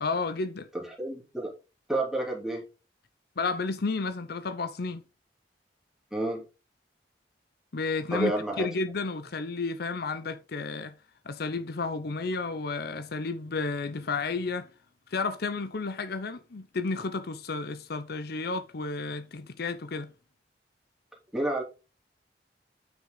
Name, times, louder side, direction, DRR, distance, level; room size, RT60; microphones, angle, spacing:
voice 1, 0.0-0.7 3.4-5.0 7.7-10.9 11.2-14.7 15.1-20.1, left 3 dB, 60° left, 0.7 m, -32 dB
voice 2, 0.7-1.5 1.9-2.6 6.1-6.4 8.1-8.7 21.3-21.6, right 1 dB, 5° right, 3.1 m, -30 dB
9.0 x 5.9 x 3.9 m
head